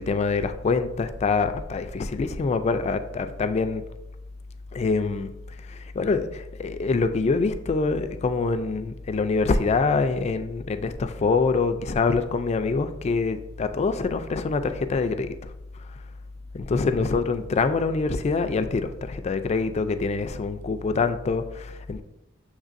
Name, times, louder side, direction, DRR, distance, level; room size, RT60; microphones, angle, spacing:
voice 1, 0.0-3.8 4.7-5.3 5.7-15.3 16.5-22.0, left 4 dB, 35° left, 9 dB, 0.3 m, -25 dB
6.3 x 3.1 x 2.5 m, 0.91 s
head